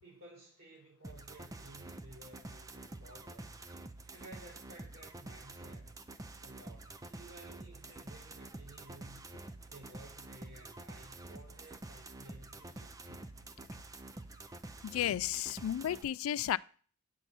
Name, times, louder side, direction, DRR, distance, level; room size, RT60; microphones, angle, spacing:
voice 1, 0.0-3.6 4.1-6.0 6.4-9.3 9.7-13.0, right 2 dB, 70° right, 4.1 m, -55 dB
sound 1, 1.0-16.0, right 2 dB, 15° right, 0.5 m, -48 dB
voice 2, 14.8-16.6, left 11 dB, 90° left, 0.3 m, -33 dB
9.1 x 6.0 x 4.2 m
head